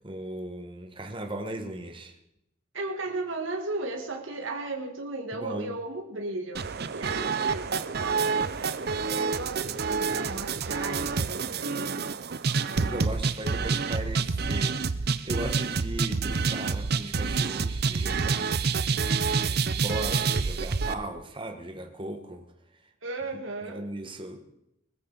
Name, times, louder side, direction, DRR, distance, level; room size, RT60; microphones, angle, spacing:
voice 1, 0.0-2.1 5.3-5.7 12.8-14.8 15.1-18.6 18.8-22.5 23.7-24.4, right 1 dB, 25° right, 4 dB, 1.4 m, -37 dB
voice 2, 2.7-12.0 19.3-19.8 23.0-23.8, right 2 dB, 85° right, 2 dB, 1.7 m, -36 dB
sound 1, 6.5-20.9, right 4 dB, 55° right, 0.6 m, -28 dB
20.0 x 14.5 x 4.0 m, 0.81 s
head